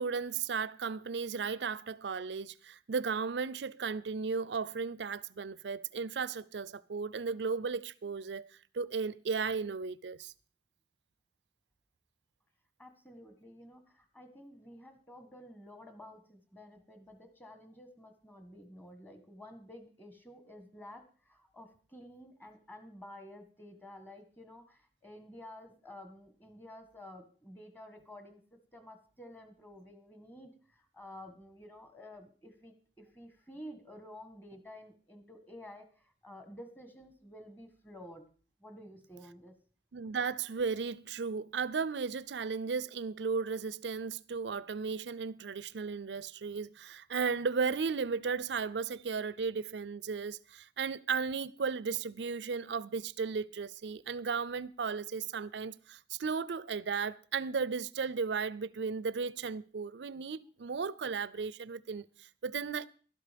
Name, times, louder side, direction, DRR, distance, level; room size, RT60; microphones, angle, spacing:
voice 1, 0.0-8.5 8.7-10.3 39.9-62.9, right 5 dB, 75° right, 0.5 m, -35 dB
voice 2, 12.8-28.4 28.7-38.3 38.6-39.6, left 1 dB, 10° left, 1.6 m, -51 dB
12.5 x 11.0 x 5.2 m
head